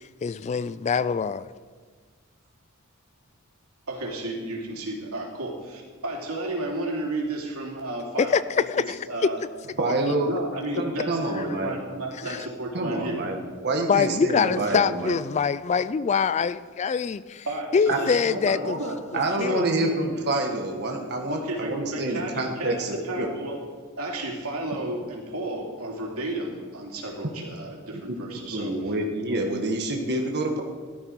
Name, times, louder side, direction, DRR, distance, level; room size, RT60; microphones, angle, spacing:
voice 1, 0.0-1.4 8.2-9.3 12.3-12.5 13.9-17.5 17.7-18.8 19.1-19.9, left 6 dB, 30° left, 16 dB, 0.3 m, -24 dB
voice 2, 3.9-9.4 10.2-13.2 17.4-19.0 19.5-19.8 21.3-23.6 24.0-28.7, right 1 dB, 80° right, -1 dB, 3.1 m, -33 dB
voice 3, 9.8-10.3 10.8-11.7 12.7-15.2 17.9-18.0 19.1-23.3 27.9-28.2 28.5-30.6, right 2 dB, 50° right, 2 dB, 1.6 m, -27 dB
16.5 x 12.5 x 4.7 m, 1.6 s
head